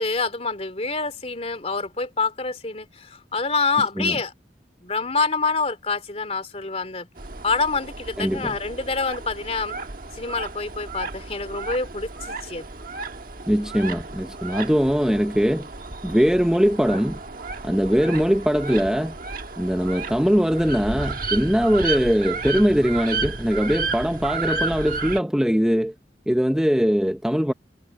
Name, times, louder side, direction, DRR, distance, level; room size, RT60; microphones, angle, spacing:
voice 1, 0.0-4.3 4.8-7.1 7.4-9.7 10.1-12.7, left 4 dB, 35° left, 3.1 m, -26 dB
sound 1, 7.2-25.2, right 3 dB, 50° right, 1.4 m, -33 dB
voice 2, 8.2-8.5 13.5-15.7 16.0-17.2 17.6-19.2 19.6-25.9 26.3-27.5, equal, 5° right, 0.7 m, -21 dB
head